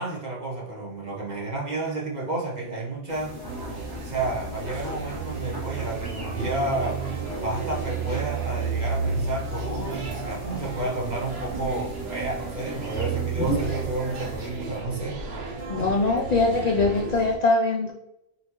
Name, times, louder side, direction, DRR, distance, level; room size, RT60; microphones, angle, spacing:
voice 1, 0.0-3.7 4.0-7.0 7.4-15.2 15.8-15.9, right 2 dB, 40° right, -4 dB, 1.2 m, -31 dB
sound 1, 3.1-14.5, equal, 20° right, 1.5 m, -38 dB
sound 2, 3.5-17.3, right 4 dB, 65° right, 1.0 m, -32 dB
voice 2, 15.7-17.9, left 3 dB, 55° left, 2 dB, 0.4 m, -22 dB
4.3 x 4.0 x 3.0 m, 0.86 s
omnidirectional pair, 1.2 m